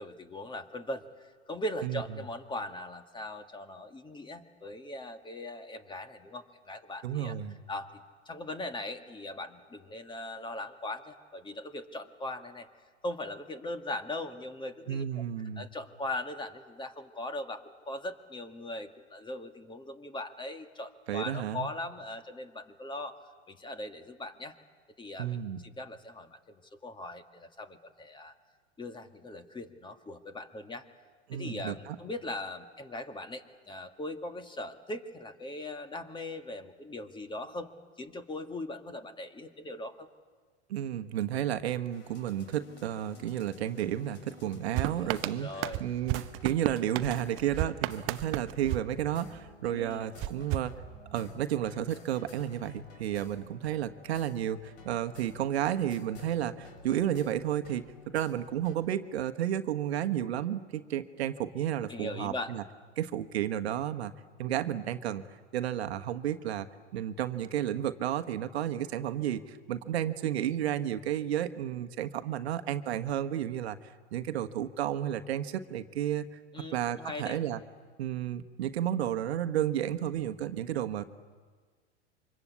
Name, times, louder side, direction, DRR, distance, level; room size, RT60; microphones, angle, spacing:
voice 1, 0.0-7.3 7.7-12.7 13.0-15.1 15.6-23.2 23.5-24.5 25.0-28.3 28.8-30.9 31.3-37.7 38.0-40.1 44.8-45.1 45.4-45.8 49.7-50.1 61.9-62.5 76.5-77.4, left 1 dB, 15° left, 8 dB, 2.0 m, -40 dB
voice 2, 7.0-7.6 14.9-15.6 21.1-21.7 25.2-25.6 31.3-32.0 40.7-50.7 51.1-57.9 58.1-62.6 63.0-64.1 64.4-65.2 65.5-66.7 66.9-73.8 74.1-76.2 76.7-77.6 78.0-81.0, right 11 dB, 65° right, 9 dB, 1.4 m, -32 dB
sound 1, 41.9-58.8, left 4 dB, 65° left, 5.5 m, -54 dB
sound 2, 44.7-49.6 50.2-51.4, right 16 dB, 35° right, 0.8 m, -35 dB
28.5 x 25.0 x 8.4 m, 1.5 s
hypercardioid pair, 100°, 34 cm